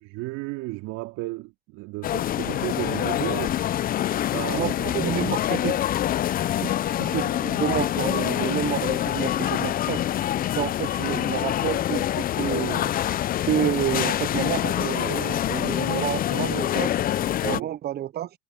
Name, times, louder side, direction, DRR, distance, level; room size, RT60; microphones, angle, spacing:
voice 1, 0.0-3.6 4.3-5.3 17.4-17.7, right 22 dB, 55° right, 3.9 m, -33 dB
sound 1, 2.0-17.6, left 12 dB, 25° left, 0.6 m, -25 dB
voice 2, 4.6-5.8 6.6-10.0 10.6-12.9 13.5-16.9 17.4-18.3, right 11 dB, 30° right, 0.9 m, -29 dB
hypercardioid pair, 105°, 32 cm